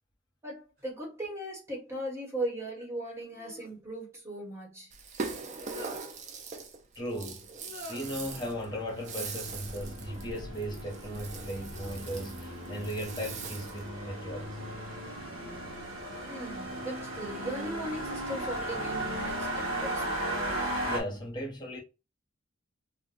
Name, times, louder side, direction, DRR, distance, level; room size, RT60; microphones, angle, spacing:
voice 1, 0.4-4.9 16.3-20.2, right 1 dB, 15° right, 1.1 m, -38 dB
sound 1, 0.8-0.9 3.2-3.8 5.3-6.0 7.5-8.3 9.8-10.2 10.7-11.3 11.7-12.6 13.8-14.4 15.0-17.0 18.1-18.6 19.2-19.7, left 2 dB, 55° right, 1.2 m, -52 dB
Rattle (instrument), 4.9-13.9, right 4 dB, 35° right, 0.4 m, -42 dB
voice 2, 6.9-14.6 20.9-21.8, equal, 20° left, 0.9 m, -37 dB
sound 2, 8.0-21.0, right 1 dB, 85° right, 1.0 m, -37 dB
2.5 x 2.1 x 3.6 m
head